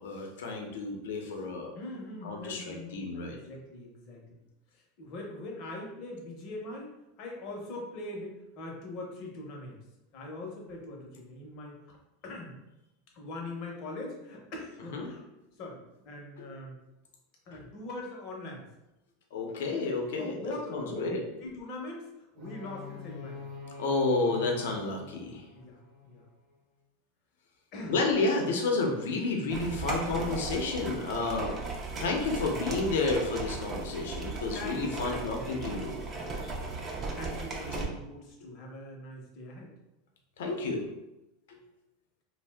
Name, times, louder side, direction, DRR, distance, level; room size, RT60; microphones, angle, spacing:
voice 1, 0.0-1.7 2.2-3.4 14.9-15.1 16.4-16.5 17.5-17.6 19.3-21.2 23.8-25.4 27.9-31.6 32.0-36.0 38.4-38.5 40.4-40.9 41.5-41.6, left 3 dB, 85° left, 2 dB, 0.6 m, -31 dB
voice 2, 1.7-4.4 4.7-9.8 10.1-12.0 12.2-12.6 13.1-15.2 15.6-15.8 16.0-16.8 17.5-18.6 20.2-21.0 21.4-23.5 25.5-26.2 27.7-28.0 34.5-35.2 36.1-39.7, left 2 dB, 40° left, 0 dB, 0.6 m, -42 dB
sound 1, 22.3-26.4, left 4 dB, 45° right, 0.8 m, -45 dB
sound 2, 29.5-37.9, right 3 dB, 20° right, 0.4 m, -37 dB
2.6 x 2.0 x 3.3 m, 0.93 s
supercardioid pair, 165°, 0 cm